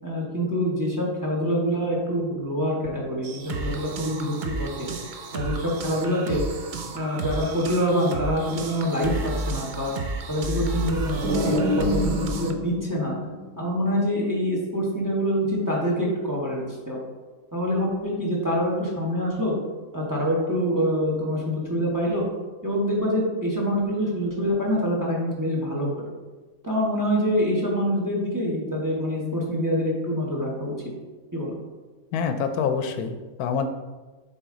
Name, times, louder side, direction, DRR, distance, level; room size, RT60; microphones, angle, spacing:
voice 1, 0.0-4.9 5.3-6.4 6.9-9.9 10.3-13.1 13.6-17.0 17.5-19.5 19.9-22.2 22.6-25.9 26.6-30.8 31.3-31.6, equal, 15° right, -3 dB, 1.1 m, -25 dB
sound 1, 3.2-12.5, right 3 dB, 85° right, 0.4 m, -32 dB
sound 2, 11.2-14.0, equal, 55° right, 1.8 m, -27 dB
voice 2, 32.1-33.7, left 6 dB, 85° left, 8 dB, 1.1 m, -26 dB
7.0 x 4.1 x 3.7 m, 1.3 s
omnidirectional pair, 1.6 m